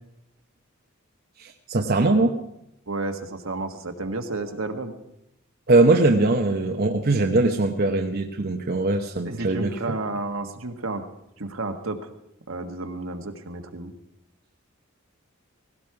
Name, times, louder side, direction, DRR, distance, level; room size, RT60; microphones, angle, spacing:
voice 1, 1.4-2.4 5.7-9.7, right 2 dB, 50° right, 3 dB, 0.9 m, -21 dB
voice 2, 2.9-5.0 7.2-7.3 9.2-11.0 11.4-12.0 12.5-13.9, right 2 dB, 75° right, 5 dB, 1.5 m, -31 dB
17.5 x 17.0 x 4.8 m, 0.82 s
head